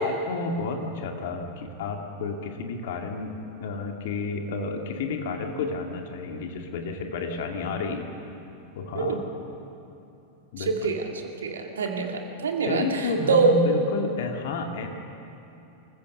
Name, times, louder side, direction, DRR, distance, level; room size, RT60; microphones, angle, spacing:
voice 1, 0.0-8.1 8.7-9.2 10.5-10.9 12.6-14.9, left 3 dB, 55° left, 3 dB, 2.2 m, -31 dB
voice 2, 10.6-11.0 11.4-12.9 13.3-13.5, right 5 dB, 65° right, 3 dB, 2.1 m, -24 dB
26.5 x 14.5 x 6.9 m, 2.8 s
figure-of-eight pair, 90°, 0 cm